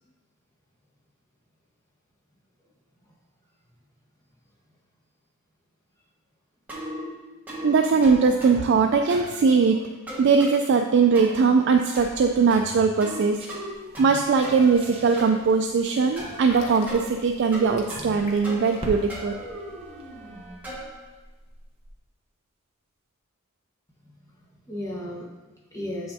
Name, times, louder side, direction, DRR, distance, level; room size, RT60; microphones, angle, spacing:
sound 1, 6.7-7.1 7.5-7.7 8.0-8.7 9.1-9.4 10.1-10.6 11.1-11.5 11.9-12.2 12.5-13.2 13.5-14.1 14.4-15.3 16.2-16.4 16.9-17.1 17.5-18.2 18.4-18.8 19.1-20.9, right 1 dB, 10° right, 1.6 m, -37 dB
voice 1, 7.6-9.9 10.2-13.4 14.0-19.3, right 5 dB, 55° right, 4 dB, 0.3 m, -20 dB
sound 2, 11.7-22.1, equal, 25° right, 0.9 m, -45 dB
sound 3, 16.3-18.7 19.0-19.2, left 2 dB, 35° left, 0.7 m, -43 dB
voice 2, 24.0-26.1, left 1 dB, 15° left, -4 dB, 1.1 m, -36 dB
7.6 x 5.6 x 2.7 m, 1.2 s
head